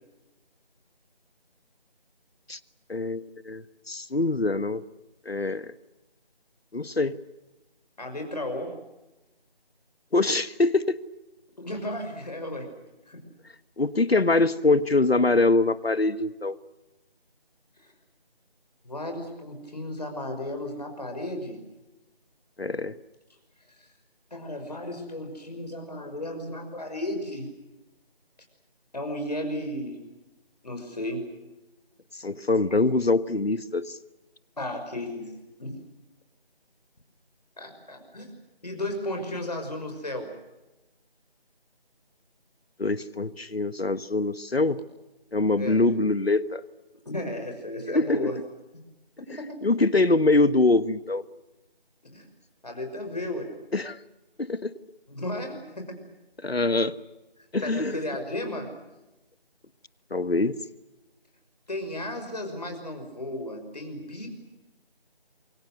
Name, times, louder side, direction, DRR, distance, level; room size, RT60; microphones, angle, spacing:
voice 1, 2.9-4.8 5.2-5.7 6.7-7.2 10.1-11.0 13.8-16.6 22.6-22.9 32.2-34.0 42.8-44.8 45.3-46.6 47.9-48.2 49.6-51.2 53.7-54.0 54.4-54.7 56.4-56.9 57.5-58.0 60.1-60.6, left 2 dB, 80° left, 15 dB, 1.5 m, -24 dB
voice 2, 8.0-8.8 11.6-12.7 13.1-13.2 17.8-17.9 18.8-21.6 23.7-23.9 24.3-27.5 28.9-30.0 30.6-31.3 34.6-35.3 35.6-35.8 37.6-38.3 38.6-40.3 45.6-45.8 47.0-48.4 49.2-49.6 52.0-52.3 52.6-53.5 55.1-56.0 57.6-58.7 61.7-64.3, left 1 dB, 40° left, 4 dB, 6.0 m, -34 dB
28.0 x 23.5 x 6.6 m, 1.0 s
figure-of-eight pair, 175°, 30 cm